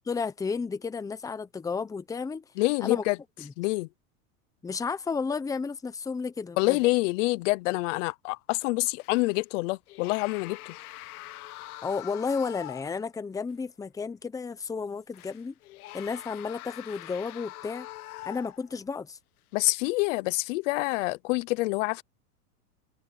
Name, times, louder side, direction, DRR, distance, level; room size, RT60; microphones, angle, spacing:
voice 1, 0.1-2.4 2.8-3.0 3.4-3.5 4.6-6.8 11.8-15.5 15.9-17.9 18.3-19.2, left 5 dB, 10° left, 0.9 m, -32 dB
voice 2, 2.6-3.2 3.6-3.9 6.6-10.8 19.5-22.0, left 22 dB, 55° left, 0.9 m, -27 dB
sound 1, 9.0-9.4 9.9-13.1 13.5-13.6 15.1-18.8 19.5-19.7, left 17 dB, 75° left, 1.2 m, -44 dB
supercardioid pair, 140°, 44 cm